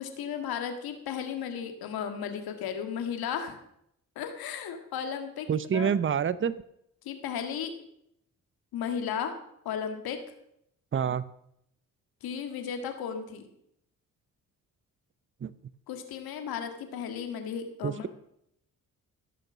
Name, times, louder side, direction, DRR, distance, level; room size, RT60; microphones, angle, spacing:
voice 1, 0.0-3.6 4.1-5.5 5.7-5.9 7.0-7.7 8.7-9.3 9.6-10.2 12.2-13.4 15.9-18.1, left 8 dB, 80° left, 6 dB, 1.8 m, -34 dB
voice 2, 5.5-6.6 10.9-11.2 15.4-15.5 17.8-18.1, right 7 dB, 35° right, 17 dB, 0.7 m, -27 dB
16.0 x 6.7 x 6.1 m, 0.75 s
supercardioid pair, 60°, 36 cm